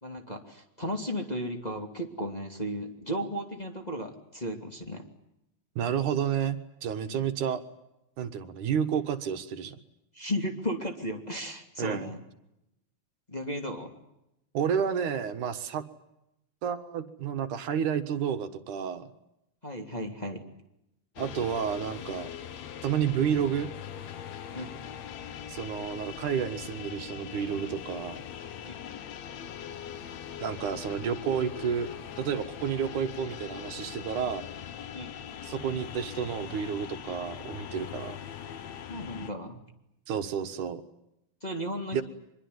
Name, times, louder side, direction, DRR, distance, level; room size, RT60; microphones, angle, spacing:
voice 1, 0.0-5.0 7.1-7.2 10.1-12.2 13.3-14.0 19.6-20.4 24.5-24.7 28.6-28.7 34.9-35.1 38.9-39.6 41.4-42.0, equal, 15° left, 2 dB, 2.5 m, -35 dB
voice 2, 5.8-7.6 8.2-9.8 11.8-12.1 14.5-15.8 16.6-19.1 21.2-22.3 22.8-23.7 25.5-28.2 30.4-31.9 32.2-34.4 35.4-38.2 40.1-40.8 41.9-42.0, right 8 dB, 75° right, 9 dB, 2.9 m, -30 dB
sound 1, 21.2-39.3, left 9 dB, 65° left, 2.4 m, -41 dB
24.5 x 22.5 x 9.6 m, 0.86 s
omnidirectional pair, 3.5 m